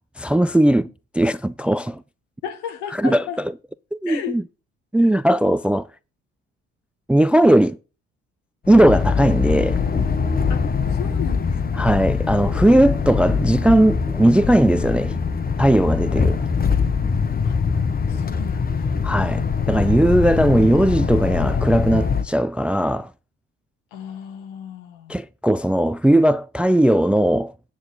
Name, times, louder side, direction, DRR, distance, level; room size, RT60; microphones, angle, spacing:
voice 1, 0.2-0.9 1.1-2.0 2.9-3.3 3.9-4.4 4.9-5.9 7.1-7.8 8.7-9.8 11.8-15.2 15.6-16.4 19.0-23.1 25.1-27.5, right 1 dB, 5° right, 0.4 m, -18 dB
voice 2, 2.4-3.4 4.1-4.4 10.5-10.6 10.9-12.1 17.4-17.6 18.1-18.9 23.9-25.2, left 9 dB, 65° left, 1.8 m, -34 dB
sound 1, 8.6-22.2, left 5 dB, 30° left, 1.3 m, -22 dB
8.8 x 7.7 x 3.8 m
figure-of-eight pair, 45°, 31 cm